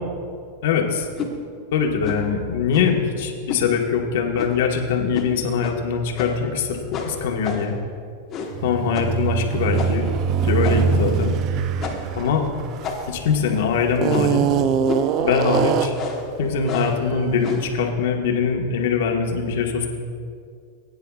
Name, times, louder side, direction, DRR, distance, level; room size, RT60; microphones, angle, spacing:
voice 1, 0.6-1.1 1.7-7.7 8.6-10.1 10.4-11.3 12.1-12.4 13.1-14.5 15.2-15.9 16.4-19.9, left 6 dB, 70° left, 2 dB, 1.4 m, -22 dB
sound 1, 1.2-1.4 2.0-2.3 2.7-3.0 3.5-3.7 4.4-4.7 5.1-5.3 5.6-5.8 6.2-6.5 6.9-7.8 8.3-8.6 8.9-9.2 9.8-10.1 10.6-11.0 11.8-12.2 12.8-13.3 14.1-14.4 14.9-15.2 15.9-16.3 16.7-17.0 17.4-17.7, left 5 dB, 30° left, 1.3 m, -31 dB
sound 2, 8.5-13.3 14.0-16.1, right 7 dB, 40° right, 0.4 m, -22 dB
19.5 x 9.6 x 2.4 m, 2.3 s
supercardioid pair, 140°, 0 cm